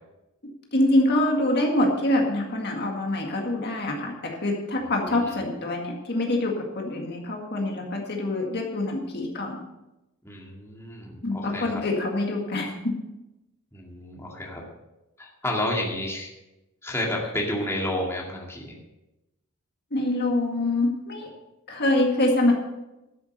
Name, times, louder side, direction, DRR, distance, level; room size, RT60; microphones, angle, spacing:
voice 1, 0.7-9.7 11.2-13.0 19.9-21.3 21.7-22.5, left 1 dB, 50° left, 1 dB, 2.0 m, -25 dB
voice 2, 4.8-5.4 10.2-11.8 13.7-14.6 15.2-16.3 16.8-18.8, left 1 dB, 10° left, -2 dB, 2.2 m, -31 dB
13.0 x 7.2 x 6.6 m, 0.97 s
head